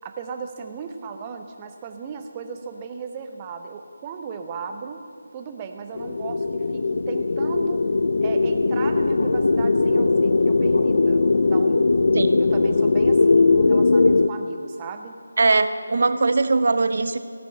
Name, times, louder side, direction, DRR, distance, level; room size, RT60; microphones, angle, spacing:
voice 1, 0.0-5.0 5.3-7.9 8.2-11.9 12.4-15.1, right 6 dB, 20° right, 6 dB, 0.8 m, -36 dB
sound 1, 6.0-14.3, left 3 dB, 60° left, 0.4 m, -19 dB
voice 2, 15.4-17.2, right 3 dB, 55° right, 11 dB, 0.6 m, -20 dB
14.5 x 5.3 x 8.8 m, 2.1 s
figure-of-eight pair, 160°, 0 cm